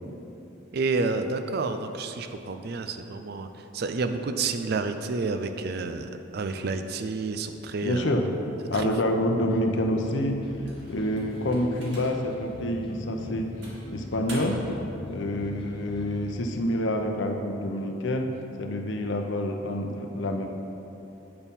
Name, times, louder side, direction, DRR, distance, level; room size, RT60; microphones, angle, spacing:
voice 1, 0.7-3.5 3.7-8.1 8.7-8.9, right 3 dB, 50° right, 8 dB, 0.4 m, -29 dB
voice 2, 7.8-8.3 8.7-10.4 10.9-13.5 13.9-14.6 15.1-18.3 18.6-20.5, left 1 dB, 65° left, 3 dB, 0.7 m, -27 dB
sound 1, 9.3-16.4, equal, 25° left, 0.7 m, -42 dB
sound 2, 10.6-12.4 12.9-13.0 13.6-14.8, right 1 dB, 70° right, 1.9 m, -44 dB
8.7 x 4.5 x 5.3 m, 3.0 s
head